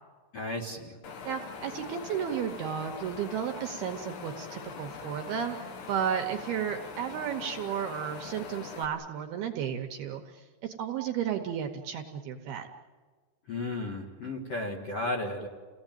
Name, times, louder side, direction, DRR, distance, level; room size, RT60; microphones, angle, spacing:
voice 1, 0.3-1.0 13.5-15.5, left 2 dB, 50° left, -1 dB, 2.0 m, -34 dB
Wind, 1.0-8.9, left 5 dB, 65° left, 3.9 m, -42 dB
voice 2, 1.3-12.7, right 8 dB, 75° right, 5 dB, 2.5 m, -33 dB
29.5 x 18.0 x 9.1 m, 1.5 s
omnidirectional pair, 5.5 m